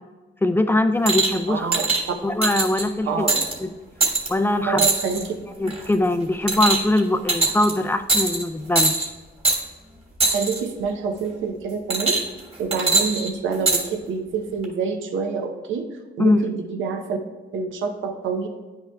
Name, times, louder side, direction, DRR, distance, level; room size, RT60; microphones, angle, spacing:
voice 1, 0.4-1.7 2.2-3.3 3.6-3.7 4.3-4.9 5.6-9.1 16.2-16.4, left 1 dB, 10° left, 8 dB, 0.4 m, -21 dB
sound 1, 1.1-1.4 1.7-2.0 2.4-2.8 3.3-3.5 4.0-4.3 4.8-5.3 5.7-5.9 6.5-7.0 7.3-7.7 8.1-8.4 8.7-9.1 9.4-9.6 10.2-10.6 11.9-12.4 12.7-13.8 14.6-14.7, right 3 dB, 30° right, 1.5 m, -21 dB
voice 2, 1.5-1.8 3.1-3.4 4.7-5.3 10.3-12.2 12.6-15.9 16.2-17.2 17.5-18.5, right 5 dB, 75° right, 5 dB, 0.8 m, -27 dB
9.6 x 5.6 x 2.3 m, 1.3 s
cardioid pair, 90°, 20 cm